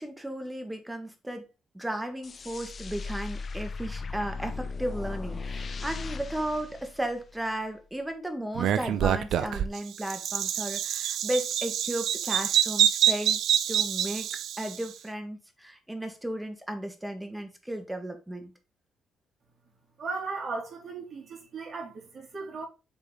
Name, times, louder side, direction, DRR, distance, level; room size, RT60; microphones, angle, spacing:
voice 1, 0.0-1.4 1.7-13.4 13.7-14.3 14.6-18.5, right 1 dB, 10° right, 1.5 m, -35 dB
sound 1, 2.2-7.6, left 4 dB, 40° left, 0.6 m, -37 dB
Bird vocalization bird call bird song, 8.6-14.8, right 10 dB, 75° right, 0.6 m, -26 dB
voice 2, 20.0-22.6, right 4 dB, 50° right, 3.1 m, -36 dB
7.2 x 4.1 x 3.9 m
cardioid pair, 90°, 0 cm